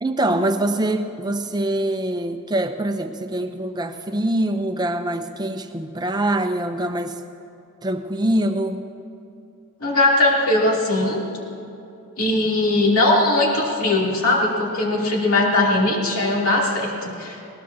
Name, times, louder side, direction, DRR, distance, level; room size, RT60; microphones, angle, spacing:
voice 1, 0.0-7.2 7.8-8.9, right 1 dB, 20° right, 6 dB, 0.7 m, -24 dB
voice 2, 9.8-11.2 12.2-17.4, left 2 dB, 75° left, -3 dB, 2.9 m, -19 dB
20.5 x 18.0 x 2.8 m, 2.7 s
head